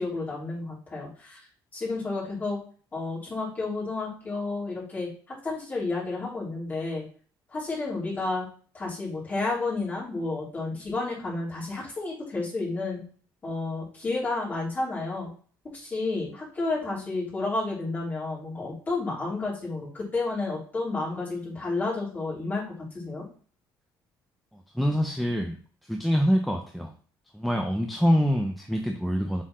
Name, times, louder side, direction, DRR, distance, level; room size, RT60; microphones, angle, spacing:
voice 1, 0.0-1.4 1.7-2.6 2.9-7.0 7.5-8.5 8.7-13.0 13.4-15.3 15.7-23.2, left 3 dB, 20° left, -6 dB, 3.3 m, -31 dB
voice 2, 24.7-25.6 25.9-26.9 27.3-29.4, equal, ahead, 3 dB, 0.5 m, -25 dB
7.3 x 4.4 x 3.0 m, 0.42 s
cardioid pair, 160°, 8 cm